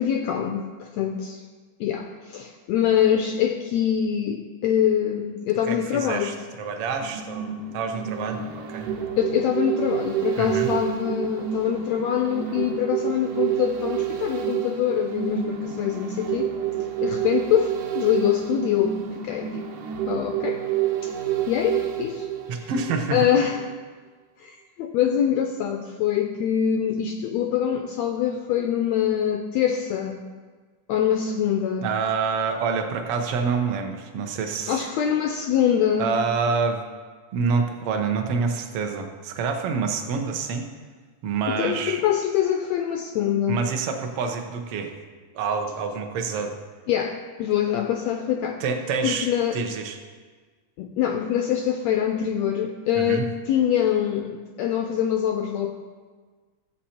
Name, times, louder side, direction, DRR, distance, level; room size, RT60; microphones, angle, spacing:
voice 1, 0.0-1.4 1.8-6.4 9.2-16.5 17.0-19.7 20.0-20.6 21.0-21.1 21.5-22.3 22.6-22.7 23.1-23.6 24.4-30.2 30.9-31.9 34.7-36.1 41.5-43.6 46.9-48.6 49.0-49.6 50.8-55.7, left 9 dB, 80° left, 5 dB, 1.6 m, -24 dB
voice 2, 5.7-8.9 10.4-10.7 22.5-23.3 31.8-34.8 36.0-36.8 37.3-40.7 41.2-42.0 43.5-44.9 45.3-46.5 48.6-49.3 49.5-50.0 52.9-53.3, right 5 dB, 65° right, 4 dB, 1.6 m, -27 dB
sound 1, 7.0-23.3 23.6-23.7, right 10 dB, 90° right, 2.5 m, -29 dB
14.5 x 8.1 x 4.3 m, 1.4 s
omnidirectional pair, 3.6 m